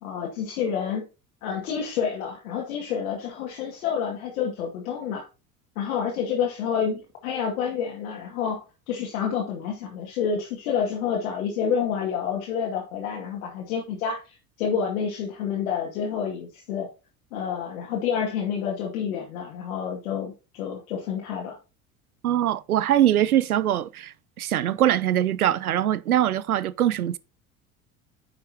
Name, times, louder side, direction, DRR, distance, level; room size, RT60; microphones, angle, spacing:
voice 1, 0.0-1.1 1.4-5.3 5.8-16.9 17.3-21.6, left 7 dB, 70° left, 2.1 m, -29 dB
voice 2, 22.2-27.2, right 11 dB, 90° right, 0.6 m, -22 dB
10.0 x 6.6 x 2.8 m
hypercardioid pair, 70°, 42 cm